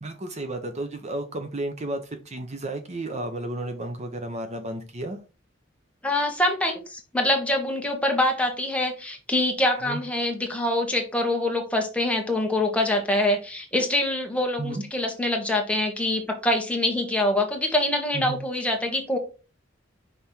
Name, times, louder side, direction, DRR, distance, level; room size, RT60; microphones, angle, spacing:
voice 1, 0.0-5.2 9.8-10.0 14.6-14.8 18.1-18.4, right 1 dB, 35° right, 6 dB, 0.8 m, -32 dB
voice 2, 6.0-19.2, left 1 dB, 5° left, 2 dB, 1.3 m, -25 dB
5.6 x 4.2 x 4.5 m, 0.31 s
head